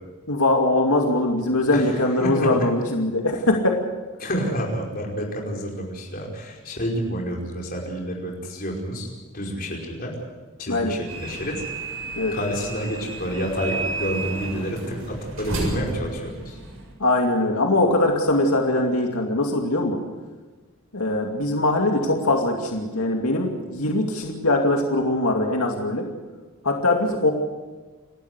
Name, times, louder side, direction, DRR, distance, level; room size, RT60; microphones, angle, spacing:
voice 1, 0.3-3.8 10.7-10.9 12.2-12.4 17.0-20.0 20.9-26.1 26.6-27.3, left 2 dB, 85° left, 1 dB, 2.5 m, -22 dB
voice 2, 1.7-2.6 4.2-9.1 9.3-10.1 10.6-11.6 12.3-16.6, equal, 40° left, -1 dB, 5.2 m, -29 dB
sound 1, 11.1-16.9, right 2 dB, 70° right, 7.4 m, -32 dB
29.0 x 13.0 x 8.3 m, 1.3 s
head